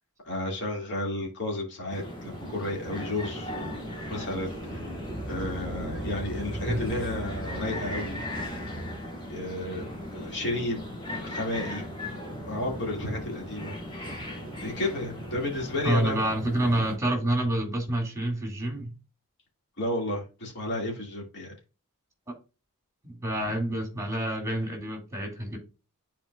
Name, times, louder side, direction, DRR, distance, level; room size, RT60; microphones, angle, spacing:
voice 1, 0.2-3.5 4.1-5.0 5.3-8.3 9.3-9.9 10.1-10.8 11.2-11.8 12.5-13.8 14.6-16.2 19.8-21.5, left 1 dB, 55° left, 2.4 m, -32 dB
sound 1, 1.9-17.0, equal, 20° left, 2.3 m, -36 dB
voice 2, 6.7-7.0 15.8-18.9 22.3-22.4 23.0-25.6, right 1 dB, 15° right, 2.3 m, -28 dB
10.0 x 4.4 x 2.4 m
head